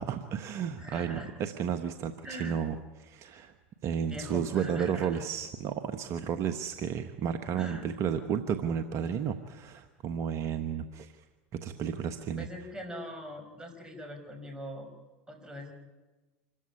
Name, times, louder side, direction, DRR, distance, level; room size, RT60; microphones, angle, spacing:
voice 1, 0.0-3.5 3.8-11.1 11.6-12.5, right 7 dB, 45° right, 8 dB, 1.3 m, -32 dB
voice 2, 0.8-1.3 2.2-2.6 4.1-5.2 7.5-7.9 12.4-14.9 15.3-15.7, equal, 10° right, 4 dB, 5.6 m, -42 dB
26.5 x 14.5 x 9.9 m, 1.2 s
hypercardioid pair, 95°, 7 cm